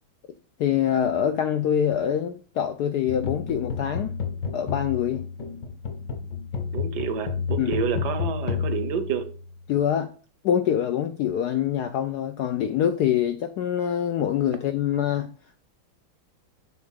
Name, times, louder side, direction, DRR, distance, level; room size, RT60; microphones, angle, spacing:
voice 1, 0.6-4.1 4.5-5.2 7.6-7.7 9.7-10.1 10.4-15.3, left 9 dB, 80° left, 0.9 m, -25 dB
sound 1, 3.1-9.7, left 6 dB, 60° left, 1.7 m, -31 dB
voice 2, 6.7-9.3, right 7 dB, 65° right, 1.1 m, -29 dB
7.3 x 3.6 x 6.2 m
omnidirectional pair, 2.3 m